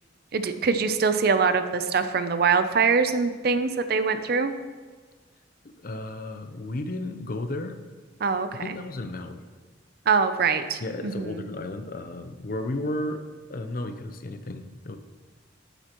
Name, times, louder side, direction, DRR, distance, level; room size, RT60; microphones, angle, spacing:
voice 1, 0.3-4.5 8.2-8.8 10.1-11.5, right 5 dB, 50° right, 10 dB, 0.5 m, -23 dB
voice 2, 5.8-7.8 8.6-9.5 10.8-15.0, left 1 dB, 45° left, 8 dB, 0.6 m, -33 dB
10.0 x 8.0 x 3.0 m, 1.4 s
head